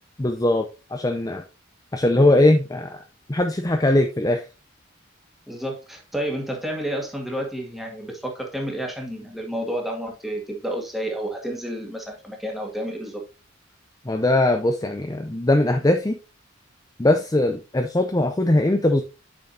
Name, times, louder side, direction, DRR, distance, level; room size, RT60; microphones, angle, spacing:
voice 1, 0.2-1.4 1.9-3.0 3.3-4.4 14.1-16.2 17.0-19.0, left 1 dB, 15° left, 6 dB, 0.6 m, -20 dB
voice 2, 5.5-13.2, right 1 dB, ahead, 0 dB, 2.0 m, -30 dB
8.6 x 6.3 x 2.8 m, 0.31 s
head